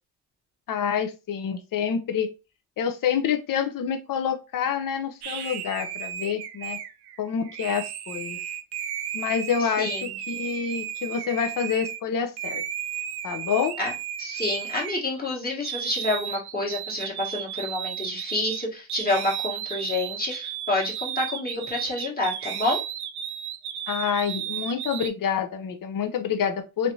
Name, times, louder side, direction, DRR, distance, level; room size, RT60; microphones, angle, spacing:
voice 1, 0.7-2.3 2.8-6.8 7.2-8.4 9.1-12.6 13.2-13.8 23.9-26.9, left 7 dB, 60° left, 7 dB, 0.6 m, -27 dB
sound 1, 5.2-12.0 12.4-15.3 15.6-25.1, right 10 dB, 85° right, 0.5 m, -34 dB
voice 2, 14.2-22.8, left 2 dB, 25° left, -3 dB, 1.2 m, -28 dB
3.2 x 2.7 x 2.7 m, 0.28 s
cardioid pair, 100°, 38 cm